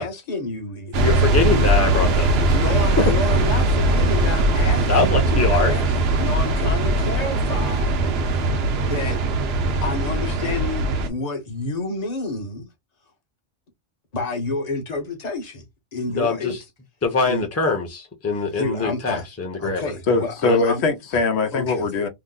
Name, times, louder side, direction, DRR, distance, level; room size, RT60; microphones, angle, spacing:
voice 1, 0.0-1.1 2.5-5.8 6.2-8.0 8.8-9.2 9.8-12.7 14.1-15.7 15.9-16.6 17.2-17.5 18.5-19.3 19.6-20.8 21.5-21.9, left 3 dB, 40° left, 0.9 m, -29 dB
sound 1, 0.9-11.1, right 2 dB, 70° right, 0.9 m, -20 dB
voice 2, 1.0-3.2 4.9-5.7 16.1-16.6 17.0-19.8 20.4-20.6, left 4 dB, 15° left, 0.6 m, -23 dB
voice 3, 20.1-22.1, left 3 dB, 85° left, 0.9 m, -21 dB
2.9 x 2.0 x 3.7 m
omnidirectional pair, 1.1 m